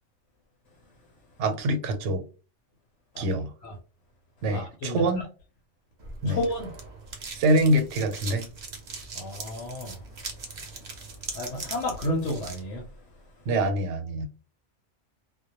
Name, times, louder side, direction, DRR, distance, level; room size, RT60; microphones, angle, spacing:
voice 1, 1.4-2.2 3.2-3.5 4.4-5.3 6.2-6.4 7.3-8.5 13.5-14.3, right 1 dB, 85° right, 0.9 m, -25 dB
voice 2, 4.5-5.0 6.3-6.7 9.1-10.0 11.3-12.9, left 1 dB, 80° left, 0.9 m, -31 dB
sound 1, 6.0-12.6, right 4 dB, 50° right, 0.6 m, -40 dB
2.2 x 2.0 x 2.7 m
omnidirectional pair, 1.2 m